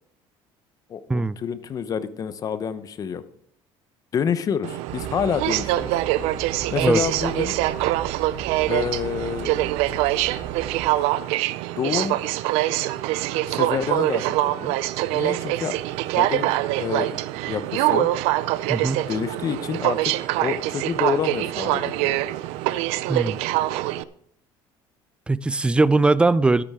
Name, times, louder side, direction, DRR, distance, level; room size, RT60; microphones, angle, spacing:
voice 1, 0.9-3.2 4.1-6.0 6.7-7.6 8.7-9.7 11.8-12.2 13.5-14.7 15.1-15.7 16.2-16.5 16.8-17.2 17.5-18.1 19.1-20.1 20.4-22.1, left 7 dB, 35° left, 13 dB, 0.9 m, -28 dB
Aircraft, 4.6-24.0, right 16 dB, 80° right, 0.5 m, -24 dB
sound 1, 4.9-10.9, right 6 dB, 45° right, 2.0 m, -38 dB
voice 2, 18.7-19.0 23.1-23.4 25.3-26.6, right 3 dB, 10° right, 18 dB, 0.4 m, -20 dB
12.5 x 9.9 x 3.7 m, 0.66 s
cardioid pair, 125°, 10 cm